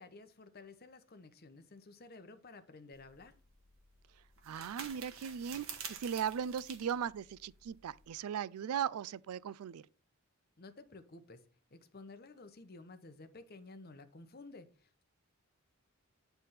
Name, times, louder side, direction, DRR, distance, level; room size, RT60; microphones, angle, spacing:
voice 1, 0.0-3.3 10.6-11.4 11.7-15.0, left 3 dB, 45° left, 0.8 m, -53 dB
sound 1, 2.9-8.1, right 6 dB, 60° right, 1.4 m, -49 dB
voice 2, 4.4-9.9, right 8 dB, 80° right, 0.3 m, -38 dB
9.4 x 3.4 x 5.6 m
head